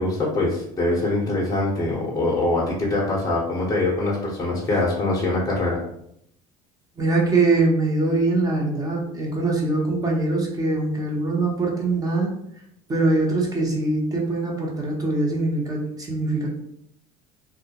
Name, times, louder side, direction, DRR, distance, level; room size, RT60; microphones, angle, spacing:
voice 1, 0.0-5.8, left 2 dB, 20° left, -4 dB, 0.7 m, -23 dB
voice 2, 7.0-12.3 12.9-16.5, right 2 dB, 20° right, -2 dB, 0.8 m, -23 dB
2.3 x 2.0 x 2.9 m, 0.73 s
supercardioid pair, 95°, 17 cm